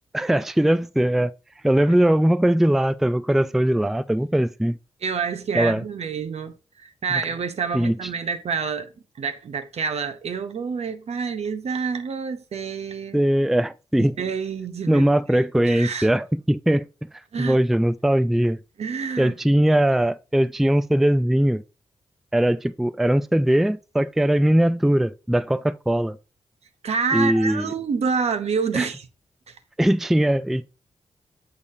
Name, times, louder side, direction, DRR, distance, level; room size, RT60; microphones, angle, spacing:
voice 1, 0.1-1.3 1.6-4.8 5.5-5.8 7.7-7.9 13.1-14.2 14.9-16.9 17.4-18.6 19.2-21.6 22.3-26.2 27.1-27.7 28.7-28.9 29.8-30.7, right 1 dB, 5° right, 0.3 m, -20 dB
voice 2, 5.0-8.9 9.2-13.2 14.0-15.0 15.3-16.1 17.3-17.6 18.8-19.3 26.8-29.1 29.5-29.6, right 5 dB, 70° right, 0.8 m, -28 dB
6.7 x 5.2 x 2.7 m
supercardioid pair, 45°, 11 cm